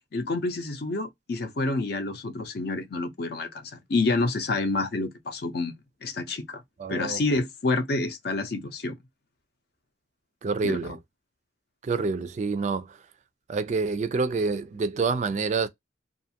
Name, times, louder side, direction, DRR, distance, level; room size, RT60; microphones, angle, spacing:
voice 1, 0.1-6.6 6.9-9.0 10.6-10.9 11.9-12.1, left 3 dB, 55° left, 0.6 m, -28 dB
voice 2, 6.8-7.2 10.4-11.0 11.8-12.9 13.5-15.7, right 4 dB, 40° right, 0.3 m, -27 dB
2.5 x 2.4 x 2.7 m
head